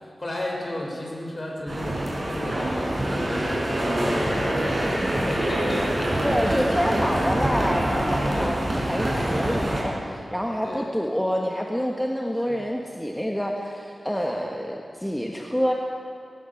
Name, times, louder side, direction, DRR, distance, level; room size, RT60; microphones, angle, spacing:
voice 1, 0.0-2.9 3.3-4.4 4.9-7.2 8.3-8.6 10.6-10.9 12.5-12.7 14.3-14.5, left 1 dB, 40° left, -1 dB, 6.1 m, -34 dB
sound 1, 1.7-9.8, right 1 dB, 35° right, 5.9 m, -25 dB
voice 2, 6.2-15.7, equal, 5° left, 0 dB, 1.6 m, -27 dB
19.0 x 19.0 x 7.3 m, 2.5 s
wide cardioid pair, 65°, 0 cm